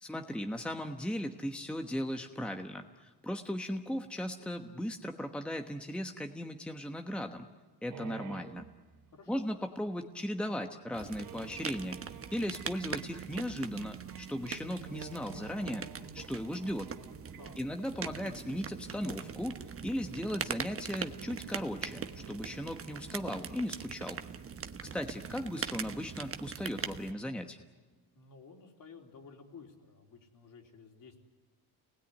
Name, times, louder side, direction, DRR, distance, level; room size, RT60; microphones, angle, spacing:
voice 1, 0.0-7.5 7.8-8.7 9.3-12.0 12.3-15.8 16.1-16.9 17.6-24.2 24.9-27.6, equal, 5° left, 5 dB, 1.2 m, -37 dB
sound 1, 7.9-9.5 9.9-10.0 10.3-10.4 11.0-23.8, right 8 dB, 60° right, 2.4 m, -52 dB
voice 2, 9.1-9.5 17.4-17.6 28.1-31.3, left 5 dB, 50° left, 2 dB, 3.6 m, -53 dB
sound 2, 10.9-27.1, right 6 dB, 35° right, 1.2 m, -42 dB
29.0 x 20.0 x 9.6 m, 1.3 s
cardioid pair, 125°, 40 cm